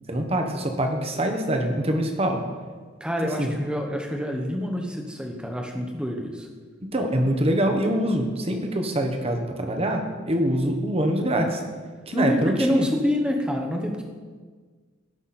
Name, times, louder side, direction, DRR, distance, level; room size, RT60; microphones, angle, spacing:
voice 1, 0.1-2.4 3.4-3.5 6.9-11.6 12.1-12.9, right 1 dB, 30° right, 4 dB, 1.2 m, -24 dB
voice 2, 3.0-6.5 12.1-14.0, left 1 dB, 5° right, 1 dB, 1.1 m, -27 dB
17.0 x 6.0 x 4.3 m, 1.5 s
head